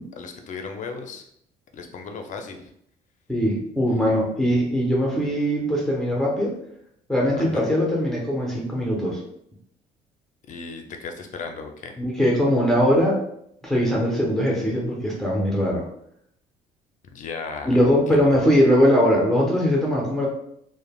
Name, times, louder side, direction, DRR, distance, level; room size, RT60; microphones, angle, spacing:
voice 1, 0.2-1.3 1.7-2.7 7.4-7.7 10.5-11.9 17.0-18.3, left 4 dB, 50° left, 5 dB, 0.5 m, -36 dB
voice 2, 3.3-6.6 7.1-9.2 12.0-13.2 13.6-15.8 17.7-20.3, equal, ahead, -3 dB, 0.7 m, -21 dB
3.1 x 2.1 x 2.3 m, 0.72 s
cardioid pair, 110°, 17 cm